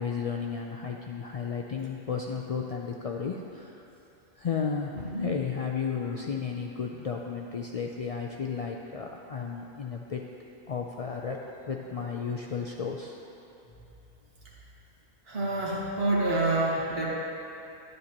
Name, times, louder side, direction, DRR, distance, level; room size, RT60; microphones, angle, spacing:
voice 1, 0.0-3.8 4.4-10.2 10.7-11.4 11.6-13.2, left 6 dB, 55° left, 0 dB, 0.4 m, -33 dB
voice 2, 15.3-17.1, right 2 dB, 70° right, -4 dB, 1.7 m, -27 dB
11.0 x 9.4 x 2.9 m, 2.8 s
omnidirectional pair, 1.0 m